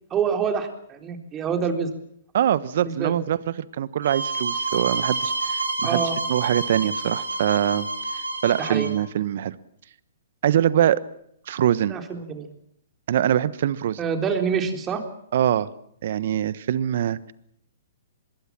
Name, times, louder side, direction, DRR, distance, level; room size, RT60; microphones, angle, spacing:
voice 1, 0.1-1.9 2.8-3.1 5.8-6.2 8.6-8.9 11.9-12.5 14.0-15.0, right 6 dB, 20° right, 5 dB, 3.9 m, -26 dB
voice 2, 2.3-6.0 6.3-7.9 8.1-9.5 10.4-11.0 11.5-11.9 13.1-14.0 15.3-15.7 16.0-17.3, right 10 dB, 60° right, 17 dB, 1.2 m, -23 dB
sound 1, 4.0-8.9, right 3 dB, 90° right, 4.8 m, -28 dB
25.0 x 21.5 x 7.6 m, 0.74 s
hypercardioid pair, 125°, 0 cm